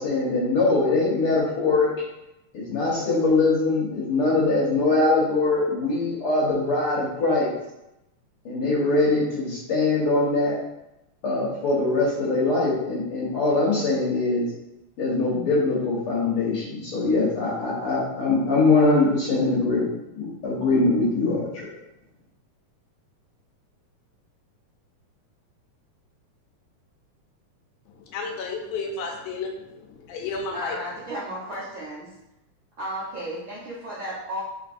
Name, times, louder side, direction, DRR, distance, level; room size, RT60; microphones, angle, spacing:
voice 1, 0.0-1.9 2.5-7.5 8.4-10.5 11.2-14.5 15.0-19.9 20.1-21.6, left 3 dB, 60° left, -6 dB, 1.6 m, -22 dB
voice 2, 28.1-30.8, left 4 dB, 80° left, 1 dB, 2.1 m, -32 dB
voice 3, 30.5-32.1 32.8-34.4, equal, 70° right, -9 dB, 1.1 m, -33 dB
4.6 x 3.9 x 2.5 m, 0.90 s
omnidirectional pair, 3.5 m